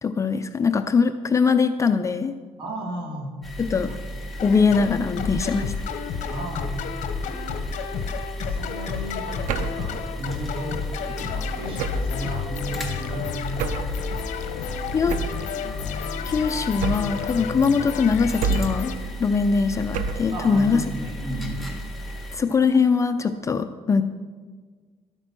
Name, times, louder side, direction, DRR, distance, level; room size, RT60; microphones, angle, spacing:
voice 1, 0.0-2.3 3.6-3.9 4.4-5.7 14.9-15.2 16.3-18.9 19.2-20.8 22.3-24.0, left 5 dB, 25° left, 9 dB, 0.5 m, -21 dB
voice 2, 2.6-3.3 3.8-4.0 6.3-6.8 8.4-13.9 20.3-21.7, right 1 dB, 45° right, 1 dB, 2.8 m, -34 dB
sound 1, 3.4-22.4, equal, ahead, 1.6 m, -35 dB
sound 2, 4.4-19.0, left 7 dB, 75° left, 1.0 m, -32 dB
sound 3, 9.5-9.9 11.8-12.2 13.6-14.0 15.1-15.5 16.8-17.3 18.4-18.9 19.9-20.4, right 5 dB, 85° right, 0.8 m, -27 dB
12.5 x 8.9 x 6.1 m, 1.5 s
cardioid pair, 150°, 13 cm